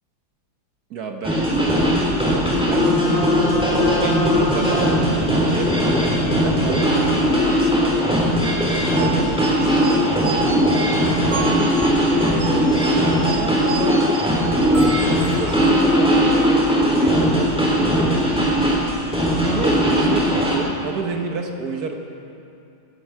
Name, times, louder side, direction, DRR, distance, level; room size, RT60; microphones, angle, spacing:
voice 1, 0.9-5.7 6.2-11.8 12.1-12.7 13.2-18.2 19.3-22.0, right 4 dB, 70° right, 3 dB, 1.7 m, -30 dB
sound 1, 1.2-20.6, equal, 5° right, 3.4 m, -19 dB
sound 2, 9.0-15.8, right 4 dB, 20° right, 1.0 m, -30 dB
16.5 x 16.0 x 4.6 m, 2.7 s
omnidirectional pair, 1.7 m